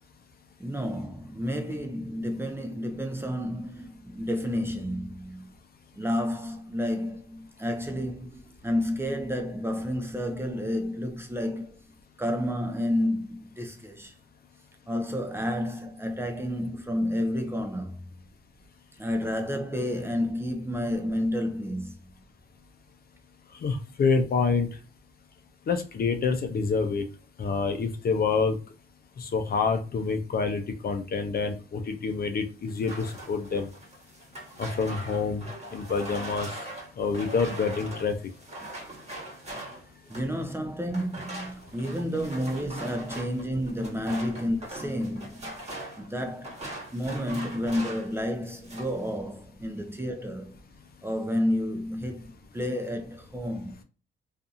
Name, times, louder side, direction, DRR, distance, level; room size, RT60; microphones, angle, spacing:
voice 1, 0.6-5.5 5.9-11.8 12.2-14.2 14.9-18.1 19.0-22.0 40.1-45.5 46.0-50.6 51.0-53.8, equal, 10° right, 0.6 m, -30 dB
voice 2, 23.6-24.7 25.7-27.0 27.4-28.6 29.2-33.7 34.6-35.4 35.7-36.5 37.0-38.2, left 4 dB, 50° left, 0.6 m, -27 dB
sound 1, 32.7-40.4 40.9-48.2 48.5-49.0, right 1 dB, 35° right, 1.3 m, -41 dB
2.6 x 2.5 x 2.4 m
cardioid pair, 95°, 20 cm